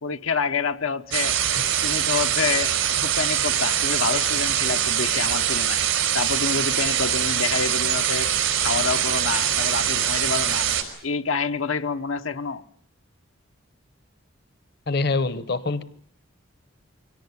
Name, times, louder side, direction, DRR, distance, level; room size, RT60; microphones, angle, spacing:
voice 1, 0.0-5.8 6.1-8.3 8.6-10.7 11.0-12.6, left 5 dB, 80° left, 0.9 m, -28 dB
sound 1, 1.1-10.8, right 9 dB, 90° right, 4.2 m, -23 dB
voice 2, 14.9-15.8, left 3 dB, 50° left, 0.9 m, -24 dB
24.0 x 18.0 x 9.6 m
head